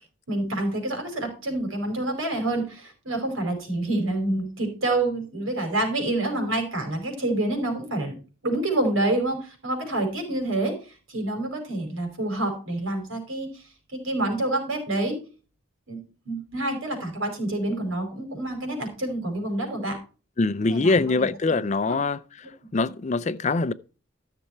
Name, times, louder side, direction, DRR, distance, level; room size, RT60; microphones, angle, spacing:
voice 1, 0.3-8.2 8.4-10.7 11.1-13.6 13.9-15.2 15.9-16.0 16.2-20.0 20.7-21.3 21.9-22.0, right 2 dB, 80° right, 5.0 m, -27 dB
voice 2, 20.4-22.2 22.7-23.7, left 3 dB, 35° left, 0.4 m, -23 dB
13.5 x 6.8 x 4.4 m
head